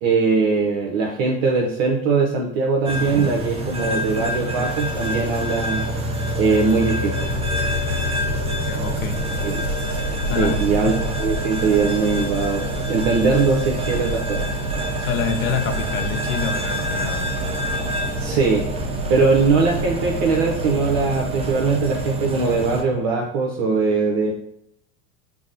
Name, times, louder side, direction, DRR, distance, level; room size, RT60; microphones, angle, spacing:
voice 1, 0.0-5.8 6.4-7.3 9.4-9.6 10.3-14.5 18.2-18.6 19.1-24.3, right 4 dB, 60° right, 0 dB, 0.7 m, -21 dB
sound 1, 2.9-22.8, right 1 dB, 15° right, 0.7 m, -27 dB
Wind, 7.2-22.5, left 2 dB, 45° left, 0.5 m, -32 dB
voice 2, 8.2-9.2 10.3-11.1 15.0-17.3 18.9-19.0, left 6 dB, 85° left, 7 dB, 0.6 m, -28 dB
5.7 x 2.0 x 2.6 m, 0.76 s
hypercardioid pair, 90°, 41 cm